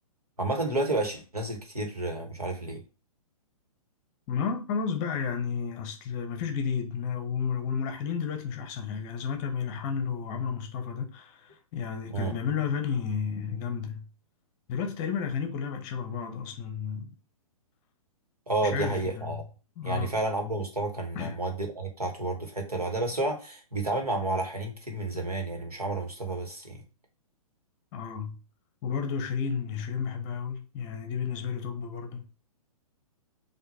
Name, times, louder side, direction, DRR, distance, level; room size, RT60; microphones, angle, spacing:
voice 1, 0.4-2.8 12.1-12.3 18.5-19.4 19.8-26.8, right 2 dB, 85° right, 1.5 m, -31 dB
voice 2, 4.3-14.1 14.7-17.1 18.6-19.4 19.8-20.2 21.1-21.4 27.9-28.4 28.8-32.3, left 6 dB, 30° left, 0.8 m, -32 dB
5.8 x 2.6 x 2.9 m
figure-of-eight pair, 120°, 19 cm